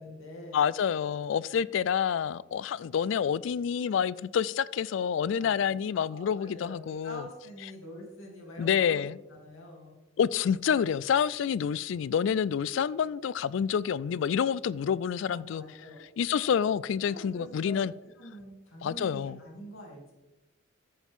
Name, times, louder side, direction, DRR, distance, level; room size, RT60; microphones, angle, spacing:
voice 1, 0.0-0.7 5.4-9.9 15.2-16.1 17.1-17.8 18.2-20.1, equal, 90° left, 2.8 m, -46 dB
voice 2, 0.5-7.2 8.6-9.2 10.2-15.6 16.2-17.9 18.8-19.4, left 7 dB, 65° left, 0.3 m, -28 dB
13.0 x 7.3 x 3.6 m
head